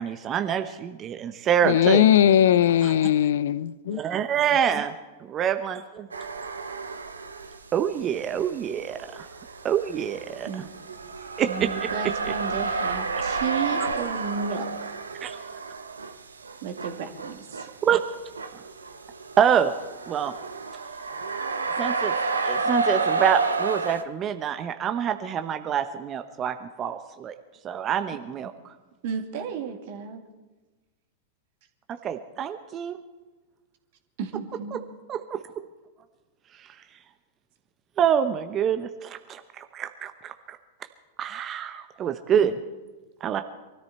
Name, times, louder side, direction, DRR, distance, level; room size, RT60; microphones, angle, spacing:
voice 1, 0.0-2.1 2.8-2.9 3.9-4.9 5.2-5.8 7.7-9.3 9.6-10.7 11.4-12.3 13.8-13.9 15.2-15.4 17.8-18.0 19.4-19.7 20.1-20.3 21.8-22.1 22.4-27.3 27.6-28.7 31.9-33.0 34.7-34.8 35.1-35.4 38.0-40.6 41.2-42.5 43.2-43.4, right 8 dB, 30° right, 0.9 m, -26 dB
voice 2, 1.7-4.0, left 10 dB, 65° left, 0.5 m, -19 dB
sound 1, 6.1-7.6 8.0-24.0, right 4 dB, 90° right, 0.9 m, -31 dB
voice 3, 11.5-14.9 16.6-17.7 29.0-30.2 34.2-34.8 42.3-42.5, right 6 dB, 55° right, 2.3 m, -33 dB
23.5 x 13.5 x 4.3 m
hypercardioid pair, 100°, 0 cm